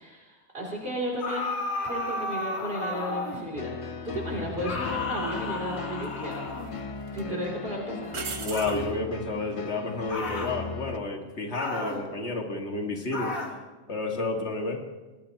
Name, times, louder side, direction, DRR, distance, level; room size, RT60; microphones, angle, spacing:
voice 1, 0.0-1.5 1.8-3.7 4.0-6.5 7.1-8.4, equal, 45° right, -3 dB, 3.2 m, -34 dB
sound 1, 1.2-3.5 4.6-6.9 8.5-8.9 10.1-10.6 11.5-12.1 13.1-13.6, left 2 dB, 85° left, 2.2 m, -33 dB
sound 2, 3.5-11.0, left 4 dB, 35° left, 0.6 m, -37 dB
sound 3, 4.7-4.9 6.0-6.7 7.1-7.2 8.1-8.8 11.9-12.3, right 6 dB, 70° right, 1.4 m, -38 dB
voice 2, 8.4-13.3 13.9-14.8, left 2 dB, 55° left, 2 dB, 2.2 m, -31 dB
25.0 x 18.5 x 2.9 m, 1.2 s
omnidirectional pair, 1.4 m